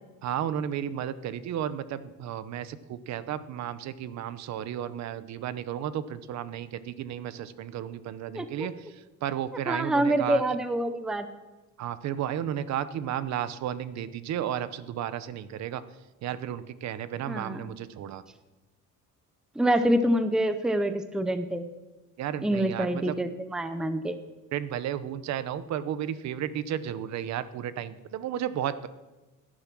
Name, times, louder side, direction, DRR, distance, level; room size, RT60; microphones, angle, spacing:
voice 1, 0.2-10.4 11.8-15.8 16.2-18.2 22.2-23.2 24.5-28.9, right 10 dB, 55° right, 15 dB, 0.8 m, -33 dB
voice 2, 8.3-8.7 9.7-11.3 17.3-17.6 19.6-21.7 22.4-24.2, right 1 dB, ahead, 10 dB, 0.6 m, -26 dB
17.5 x 10.5 x 6.0 m, 1.1 s
cardioid pair, 180°, 32 cm